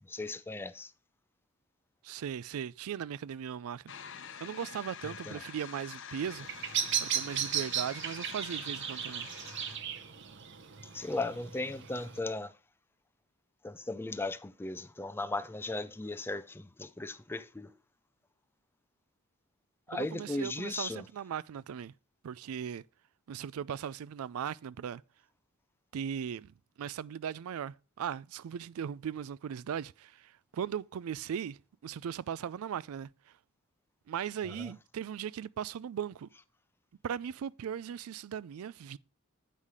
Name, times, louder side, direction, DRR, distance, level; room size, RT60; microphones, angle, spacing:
voice 1, 0.0-0.9 5.0-5.4 10.8-12.5 13.6-17.7 19.9-21.1 34.4-34.7, left 2 dB, 10° left, 0.4 m, -37 dB
voice 2, 2.0-3.8 4.4-6.5 7.0-9.3 19.9-21.9 22.2-22.8 23.3-25.0 25.9-33.3 34.1-36.3 37.0-39.0, right 8 dB, 80° right, 0.3 m, -38 dB
sound 1, 3.9-9.8, left 8 dB, 55° left, 0.7 m, -47 dB
Bird vocalization bird call bird song, 6.2-12.2, right 8 dB, 55° right, 0.8 m, -36 dB
8.2 x 5.7 x 4.7 m
head